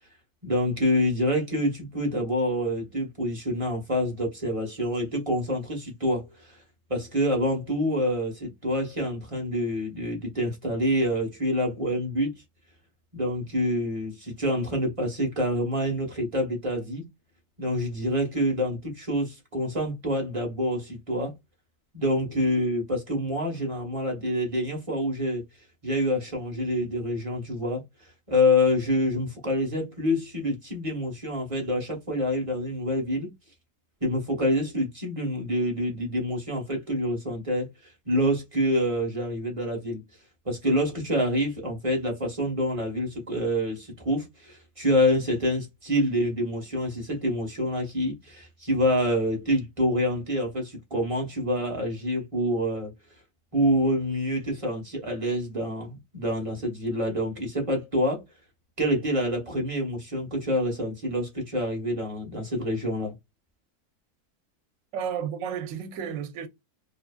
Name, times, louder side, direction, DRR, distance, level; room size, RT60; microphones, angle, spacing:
voice 1, 0.4-6.6 6.9-12.4 13.1-17.0 17.6-21.3 21.9-25.4 25.8-27.8 28.3-33.3 34.0-37.7 38.1-40.0 40.4-52.9 53.5-58.2 58.8-63.1, equal, 30° right, 0.7 m, -27 dB
voice 2, 64.9-66.5, right 8 dB, 65° right, 1.0 m, -32 dB
2.7 x 2.4 x 2.2 m
omnidirectional pair, 1.6 m